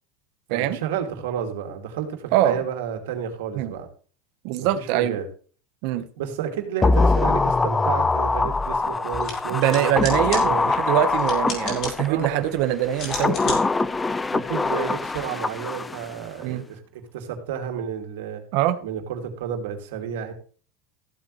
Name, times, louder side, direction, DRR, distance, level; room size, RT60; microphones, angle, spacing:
voice 1, 0.5-3.9 4.6-5.3 6.2-9.9 10.4-10.7 12.1-12.4 14.3-18.4 18.8-20.3, right 8 dB, 90° right, 4 dB, 2.7 m, -31 dB
voice 2, 4.4-5.2 5.8-6.1 9.5-13.6 16.4-16.6 18.5-18.8, right 12 dB, 60° right, 9 dB, 1.2 m, -23 dB
sound 1, 6.8-12.3 12.9-16.1 16.4-16.5, left 3 dB, 10° left, 0.4 m, -23 dB
sound 2, 9.1-15.2, left 4 dB, 40° left, 5.1 m, -37 dB
15.0 x 8.2 x 3.3 m, 0.41 s
supercardioid pair, 150°, 0 cm